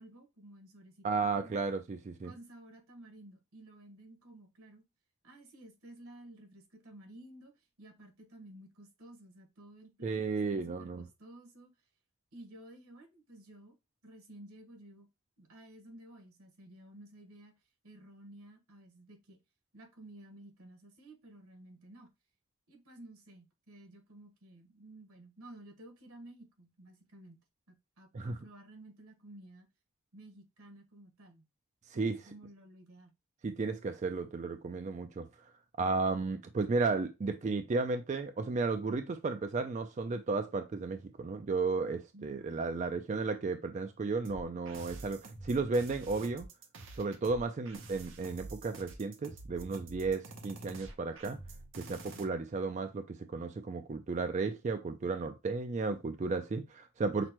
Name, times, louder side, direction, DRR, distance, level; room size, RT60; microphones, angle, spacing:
voice 1, 0.0-1.7 2.2-4.8 5.2-11.7 12.3-13.8 14.0-15.1 15.4-17.5 17.8-19.4 19.7-22.1 22.7-27.4 27.7-29.7 30.1-31.5 31.9-33.1 42.1-42.7 57.2-57.3, right 1 dB, 90° right, 1.3 m, -54 dB
voice 2, 1.0-2.3 10.0-11.1 28.1-28.4 31.9-32.2 33.4-35.5 35.8-46.5 47.0-51.4 51.7-57.3, right 4 dB, 35° right, 0.3 m, -34 dB
sound 1, 44.2-52.2, right 2 dB, 60° right, 0.8 m, -48 dB
5.9 x 2.1 x 2.9 m
head